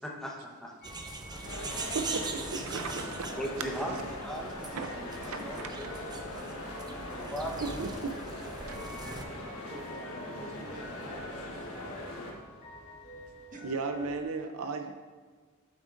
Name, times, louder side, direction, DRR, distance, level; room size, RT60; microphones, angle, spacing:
voice 1, 0.0-0.7 1.3-1.9 3.3-4.8 5.2-6.0 7.1-7.7, equal, ahead, -2 dB, 0.9 m, -39 dB
sound 1, 0.8-14.2, equal, 55° left, 2.2 m, -50 dB
sound 2, 0.8-9.2, right 3 dB, 20° right, 0.4 m, -42 dB
sound 3, 1.4-12.3, left 1 dB, 80° left, 1.2 m, -41 dB
voice 2, 1.9-3.4 3.9-4.0 4.7-5.0 5.9-6.1 7.6-8.8 13.6-14.9, right 4 dB, 75° right, 7 dB, 0.4 m, -36 dB
voice 3, 4.7-5.5 5.8-6.3 6.6-6.8 9.7-12.0 13.5-13.6, right 1 dB, 40° right, 0 dB, 1.1 m, -49 dB
8.7 x 7.3 x 2.5 m, 1.5 s
head